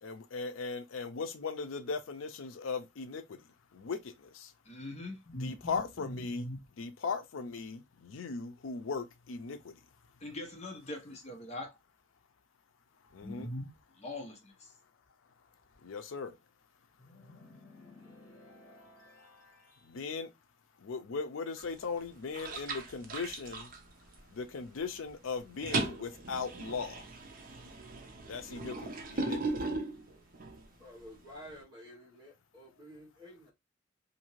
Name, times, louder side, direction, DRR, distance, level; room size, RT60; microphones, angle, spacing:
voice 1, 0.0-3.4 3.7-4.5 5.4-6.5 6.8-9.8 13.1-13.5 15.8-16.4 19.8-20.3 20.8-23.7 24.3-27.1 28.3-29.6, left 4 dB, 90° left, 0.5 m, -38 dB
voice 2, 4.6-6.6 10.2-11.7 13.2-13.7 13.9-14.7, left 1 dB, 35° left, 0.7 m, -42 dB
sound 1, 17.0-20.0, left 2 dB, 70° left, 1.5 m, -56 dB
sound 2, 21.6-22.0 22.3-24.5 24.8-25.1 25.4-30.7, right 3 dB, 45° right, 0.5 m, -38 dB
voice 3, 30.7-33.5, equal, 25° right, 1.2 m, -51 dB
2.7 x 2.6 x 2.9 m
head